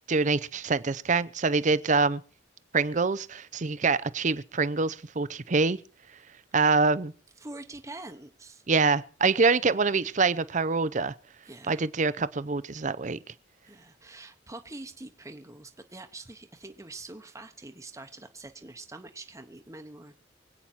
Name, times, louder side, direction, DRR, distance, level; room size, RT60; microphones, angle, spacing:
voice 1, 0.1-2.2 2.7-5.8 6.5-7.1 8.7-11.1 11.7-13.2, right 4 dB, 40° right, 0.7 m, -25 dB
voice 2, 7.4-8.6 11.4-11.8 13.6-20.1, right 2 dB, 15° right, 1.1 m, -45 dB
25.0 x 8.8 x 4.4 m
head